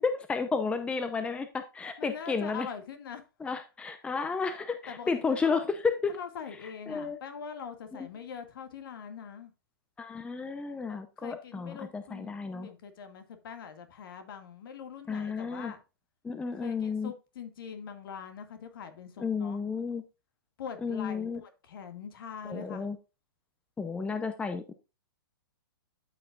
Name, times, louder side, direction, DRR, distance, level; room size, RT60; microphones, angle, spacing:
voice 1, 0.0-2.7 3.4-6.2 6.9-7.2 7.9-8.1 10.0-12.7 15.1-15.7 16.2-17.1 19.2-20.0 20.8-21.4 22.4-23.0 23.8-24.7, left 5 dB, 10° left, 0.7 m, -32 dB
voice 2, 2.0-3.2 4.9-5.7 6.1-9.5 10.9-15.8 16.5-19.6 20.6-22.9, left 6 dB, 65° left, 2.1 m, -43 dB
12.5 x 5.7 x 2.5 m
hypercardioid pair, 130°, 13 cm